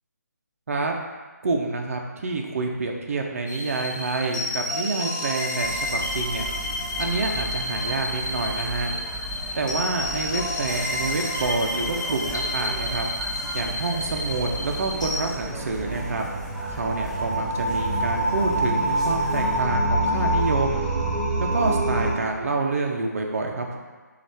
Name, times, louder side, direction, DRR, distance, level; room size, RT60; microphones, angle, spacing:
voice 1, 1.4-6.4 7.0-8.9 9.5-13.1 13.5-16.3 16.7-20.9 21.4-23.8, right 3 dB, 50° right, 2 dB, 0.6 m, -27 dB
sound 1, 3.5-15.3, left 2 dB, 85° left, 1.1 m, -30 dB
sound 2, 5.6-19.6, right 2 dB, ahead, 0.3 m, -37 dB
sound 3, 14.0-22.1, right 1 dB, 30° right, 0.9 m, -26 dB
5.0 x 2.4 x 3.4 m, 1.4 s
figure-of-eight pair, 145°, 10 cm